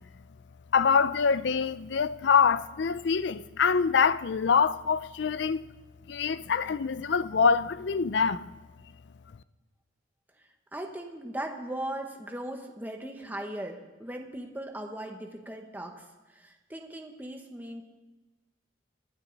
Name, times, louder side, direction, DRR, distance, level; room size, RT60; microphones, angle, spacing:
voice 1, 0.7-5.7 6.1-8.5, left 6 dB, 65° left, 0.5 m, -25 dB
voice 2, 10.7-16.0 16.3-17.8, right 1 dB, 10° right, 1.1 m, -38 dB
25.0 x 9.1 x 4.0 m
head